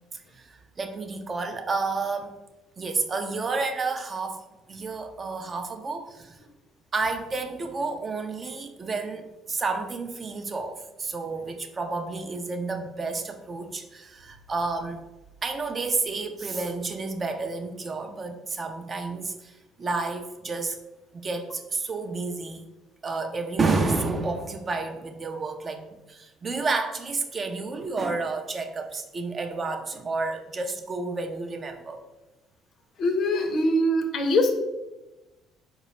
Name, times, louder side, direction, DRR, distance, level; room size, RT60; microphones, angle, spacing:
voice 1, 0.1-2.4 2.8-6.4 6.9-15.0 15.4-20.8 21.1-22.6 23.0-32.0, right 3 dB, 35° right, 5 dB, 0.4 m, -30 dB
voice 2, 33.0-34.5, left 1 dB, 55° left, 6 dB, 0.5 m, -23 dB
4.0 x 2.2 x 3.0 m, 1.1 s
hypercardioid pair, 60°, 0 cm